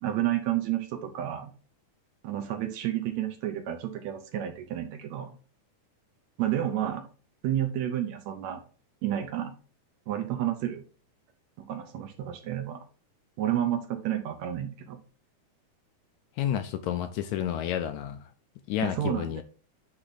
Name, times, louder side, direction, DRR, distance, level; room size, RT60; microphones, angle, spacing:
voice 1, 0.0-1.5 2.2-5.3 6.4-7.0 7.4-8.6 9.0-9.5 10.1-10.8 11.6-12.8 13.4-15.0 18.8-19.4, right 11 dB, 70° right, 1.9 m, -30 dB
voice 2, 16.4-18.3 18.7-19.4, left 11 dB, 80° left, 1.8 m, -30 dB
9.9 x 3.4 x 4.0 m
omnidirectional pair, 3.7 m